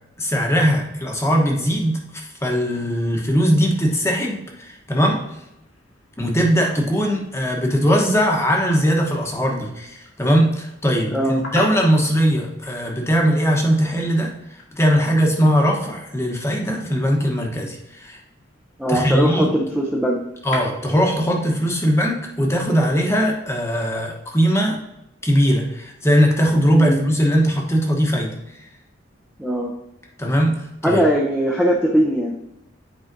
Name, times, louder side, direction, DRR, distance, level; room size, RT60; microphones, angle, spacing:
voice 1, 0.2-5.2 6.2-18.2 18.9-19.5 20.4-24.8 25.2-28.6 30.2-31.0, equal, 15° left, 0 dB, 1.0 m, -20 dB
sound 1, 5.0-23.6, left 2 dB, 80° left, 1.9 m, -41 dB
voice 2, 11.1-11.4 18.8-20.2 26.7-27.0 29.4-29.7 30.8-32.3, equal, 5° right, -2 dB, 0.6 m, -20 dB
9.0 x 4.9 x 2.7 m, 0.87 s
head